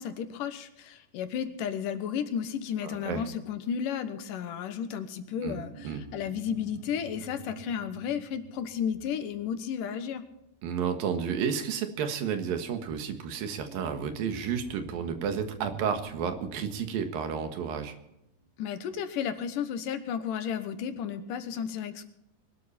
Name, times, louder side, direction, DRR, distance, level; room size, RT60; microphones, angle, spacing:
voice 1, 0.0-10.2 18.6-22.1, left 8 dB, 75° left, 10 dB, 2.7 m, -33 dB
voice 2, 2.8-3.2 5.4-5.6 5.8-6.0 10.6-18.0, right 7 dB, 90° right, 7 dB, 3.4 m, -31 dB
sound 1, 5.3-10.2 13.6-18.5, right 2 dB, 50° right, 5.9 m, -49 dB
21.5 x 12.5 x 4.3 m, 0.82 s
omnidirectional pair, 3.9 m